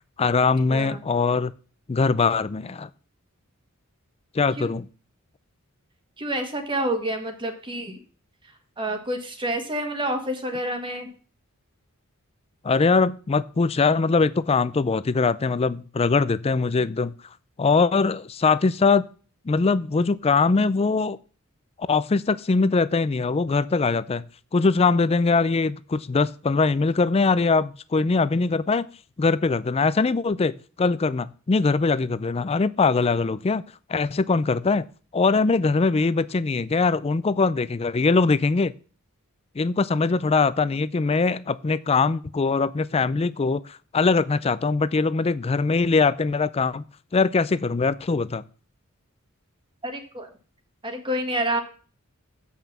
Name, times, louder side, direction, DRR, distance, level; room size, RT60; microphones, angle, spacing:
voice 1, 0.2-1.5 1.9-2.9 4.3-4.9 12.6-17.1 17.6-19.0 19.5-21.2 21.9-28.9 29.2-30.5 30.8-33.6 33.9-34.9 35.1-38.7 39.6-46.8 47.1-48.4, left 4 dB, 30° left, 17 dB, 0.4 m, -22 dB
voice 2, 0.7-1.0 4.6-4.7 6.2-8.0 8.8-11.1 49.8-50.3 50.8-51.6, right 1 dB, 25° right, 5 dB, 1.5 m, -28 dB
8.0 x 5.6 x 7.3 m, 0.40 s
head